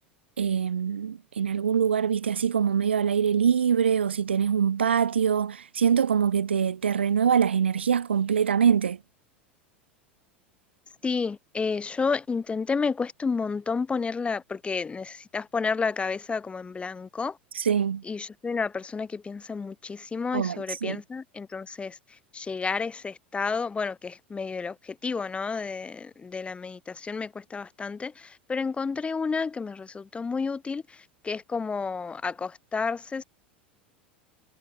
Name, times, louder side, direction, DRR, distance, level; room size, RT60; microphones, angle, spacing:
voice 1, 0.4-9.0 17.5-18.0 20.3-21.0, right 7 dB, 85° right, 0.9 m, -24 dB
voice 2, 11.0-17.4 18.0-22.0 22.3-33.2, left 5 dB, 20° left, 6.5 m, -31 dB
hypercardioid pair, 85°, 6 cm